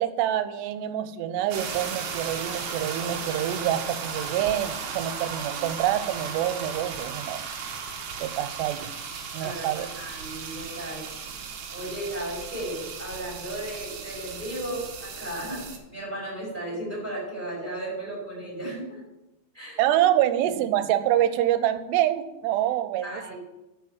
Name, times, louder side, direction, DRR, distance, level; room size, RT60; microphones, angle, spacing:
voice 1, 0.0-7.5 8.2-8.9 9.3-9.9 19.8-23.4, right 12 dB, 80° right, 11 dB, 2.8 m, -26 dB
sound 1, 1.5-15.8, right 6 dB, 60° right, 2.0 m, -36 dB
voice 2, 9.4-11.0 11.7-15.6 15.9-19.0 19.5-19.8 23.0-23.4, right 1 dB, 10° right, -6 dB, 4.6 m, -35 dB
9.4 x 7.9 x 7.2 m, 0.95 s
omnidirectional pair, 4.9 m